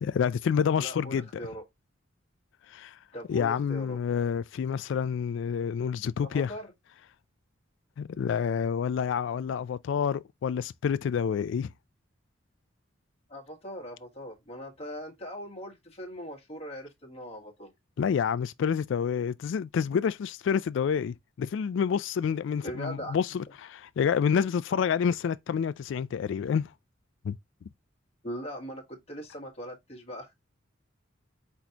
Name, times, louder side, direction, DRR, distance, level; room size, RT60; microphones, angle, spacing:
voice 1, 0.0-1.5 2.7-3.0 3.3-6.5 8.0-11.7 18.0-26.7 27.2-27.4, left 7 dB, 65° left, 0.3 m, -28 dB
voice 2, 0.8-1.6 3.1-4.0 6.2-6.7 13.3-17.7 22.6-23.2 28.2-30.3, equal, 30° left, 1.3 m, -40 dB
4.6 x 4.1 x 2.8 m
head